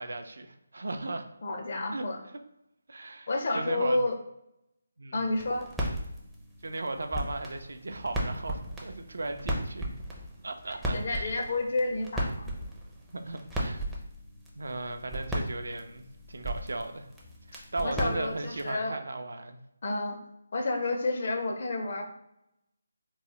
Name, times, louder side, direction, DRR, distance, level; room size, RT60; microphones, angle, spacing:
voice 1, 0.0-1.3 1.9-2.0 2.9-4.0 5.0-5.2 6.6-9.9 10.4-11.3 13.1-13.8 14.5-16.0 16.3-17.0 17.5-19.6, right 2 dB, 70° right, 7 dB, 0.4 m, -36 dB
voice 2, 1.4-2.2 3.3-4.1 5.1-5.7 10.9-12.5 17.8-18.9 19.8-20.2 20.5-22.0, left 2 dB, 55° left, 4 dB, 0.5 m, -30 dB
sound 1, 5.3-18.8, equal, 5° right, 0.4 m, -36 dB
3.0 x 2.0 x 2.8 m, 0.82 s
figure-of-eight pair, 155°, 0 cm